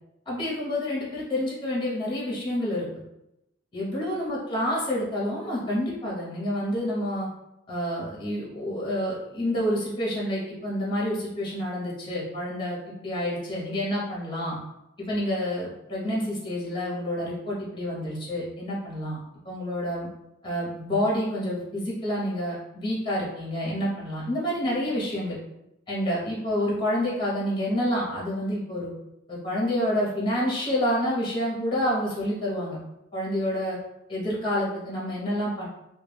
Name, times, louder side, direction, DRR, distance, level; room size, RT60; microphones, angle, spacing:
voice 1, 0.3-2.9 3.7-7.3 7.7-14.6 15.1-19.2 19.4-20.1 20.4-25.4 25.9-28.9 29.3-32.8 33.1-33.8 34.1-35.7, equal, 25° left, -6 dB, 0.7 m, -28 dB
2.2 x 2.2 x 3.2 m, 0.89 s
head